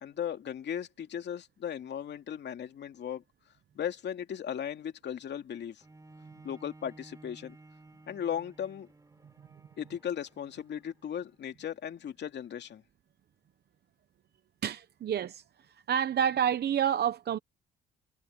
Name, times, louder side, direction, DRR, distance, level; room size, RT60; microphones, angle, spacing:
voice 1, 0.0-3.2 3.7-5.8 6.4-7.6 8.1-8.9 9.8-12.8, left 9 dB, 60° left, 2.4 m, -37 dB
Bowed string instrument, 5.8-11.4 12.1-12.2, right 2 dB, 15° right, 3.7 m, -56 dB
voice 2, 14.6-15.4 15.9-17.4, right 9 dB, 55° right, 0.9 m, -28 dB
cardioid pair, 90°, 20 cm